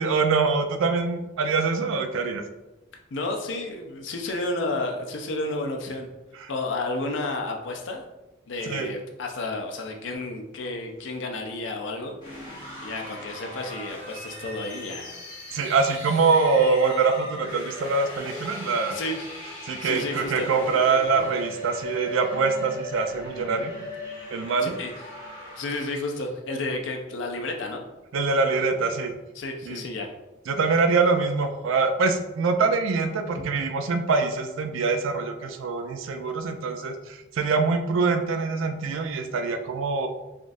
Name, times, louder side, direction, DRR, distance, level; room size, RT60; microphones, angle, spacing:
voice 1, 0.0-2.4 6.4-6.5 8.7-8.9 15.5-19.0 19.7-23.7 24.3-24.7 28.1-29.1 29.7-29.8 30.5-40.1, right 4 dB, 85° right, 6 dB, 0.4 m, -24 dB
voice 2, 3.1-6.1 6.5-8.0 8.5-12.2 12.8-15.1 18.9-19.3 19.8-20.5 24.6-24.9 25.6-27.8 29.4-30.1 33.4-33.5, left 2 dB, 70° left, 3 dB, 0.5 m, -31 dB
sound 1, 12.2-26.3, left 1 dB, 25° left, 1.1 m, -39 dB
3.6 x 2.4 x 2.5 m, 1.0 s
head